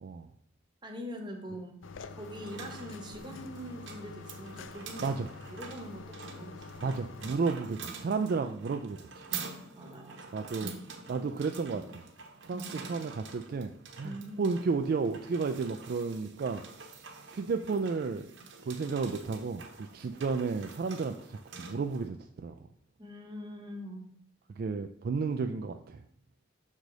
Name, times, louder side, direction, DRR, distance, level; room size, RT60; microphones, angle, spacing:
voice 1, 0.8-1.8 2.1-5.1 5.5-6.7 9.7-10.3 12.5-12.7 14.0-14.5 23.0-24.1, equal, 20° right, 2 dB, 1.0 m, -43 dB
sound 1, 1.8-7.3, left 4 dB, 70° left, 0.4 m, -47 dB
sound 2, 2.2-22.1, right 5 dB, 65° right, 1.0 m, -46 dB
voice 2, 6.8-9.3 10.3-10.7 11.1-12.0 12.4-13.7 14.0-16.6 17.3-18.3 18.7-22.6 24.5-26.0, right 4 dB, 50° right, 6 dB, 0.3 m, -32 dB
6.5 x 4.8 x 3.9 m, 0.69 s
head